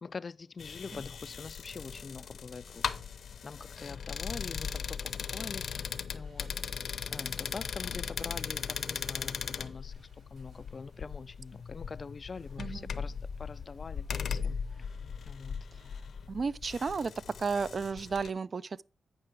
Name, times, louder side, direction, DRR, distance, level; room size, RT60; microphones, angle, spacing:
voice 1, 0.0-3.0 3.4-6.6 7.1-14.9 15.2-15.7, left 4 dB, 45° left, 0.3 m, -44 dB
sound 1, 0.6-18.3, left 6 dB, 70° left, 0.7 m, -38 dB
sound 2, 5.0-15.7, right 3 dB, 65° right, 5.3 m, -65 dB
voice 2, 16.3-17.1 17.4-18.8, right 5 dB, 45° right, 0.4 m, -32 dB
8.8 x 5.8 x 4.6 m
cardioid pair, 90°, 0 cm